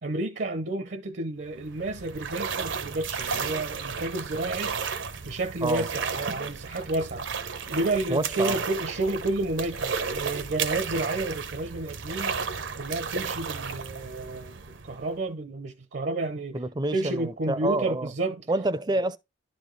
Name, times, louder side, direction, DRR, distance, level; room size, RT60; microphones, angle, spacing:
voice 1, 0.0-4.7 5.2-7.3 7.7-12.4 12.8-16.6 16.9-18.4, right 2 dB, 60° right, 0.7 m, -31 dB
sound 1, 1.5-15.2, right 5 dB, 90° right, 0.9 m, -33 dB
voice 2, 5.6-5.9 8.1-8.6 16.5-18.1 18.5-19.2, right 2 dB, 20° right, 0.5 m, -28 dB
11.5 x 4.1 x 3.2 m
head